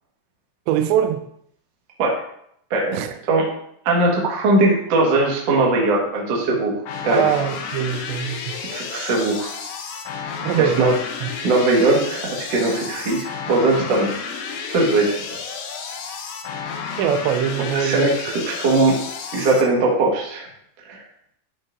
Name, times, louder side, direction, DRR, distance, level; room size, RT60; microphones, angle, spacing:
voice 1, 0.7-1.2 2.9-3.1 7.1-8.5 10.4-11.0 11.2-11.3 17.0-18.1, right 9 dB, 80° right, 7 dB, 2.7 m, -22 dB
voice 2, 3.8-6.7 7.0-7.2 8.7-9.5 10.6-10.9 11.4-14.1 14.7-15.2 17.7-18.9 19.3-20.5 20.8-21.0, right 2 dB, 60° right, -3 dB, 1.7 m, -19 dB
sound 1, 6.9-19.6, left 5 dB, 90° left, 2.0 m, -32 dB
12.0 x 5.4 x 2.6 m, 0.70 s
omnidirectional pair, 5.3 m